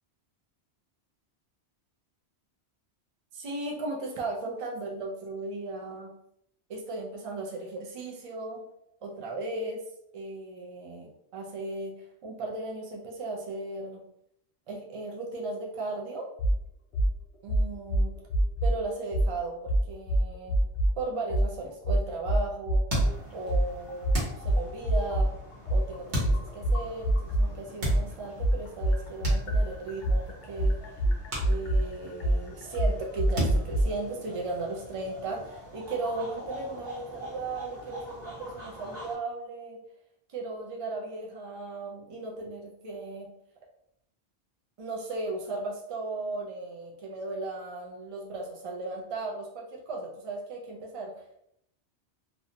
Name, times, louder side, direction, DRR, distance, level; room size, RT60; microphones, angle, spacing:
voice 1, 3.3-6.1 6.7-8.6 9.0-9.8 10.1-11.9 12.2-14.0 14.7-16.3 17.4-18.1 18.6-20.6 21.0-22.8 23.3-25.3 25.7-30.8 31.4-39.8 40.3-43.3 44.8-51.1, right 2 dB, 65° right, -1 dB, 0.3 m, -36 dB
sound 1, 16.4-16.6 16.9-17.1 17.5-18.8 19.1-19.3 19.7-20.9 21.3-21.5 21.8-23.1 23.5-27.5 27.8-33.8, right 1 dB, 65° left, 0.7 m, -25 dB
sound 2, 22.9-23.6 24.1-24.9 26.1-26.8 27.7-28.4 29.2-30.1 30.4-30.5 31.3-32.2 32.5-32.9 33.3-34.5, equal, 90° right, 1.2 m, -33 dB
sound 3, 23.0-39.2, equal, 40° right, 1.0 m, -47 dB
2.6 x 2.1 x 2.7 m, 0.76 s
omnidirectional pair, 1.1 m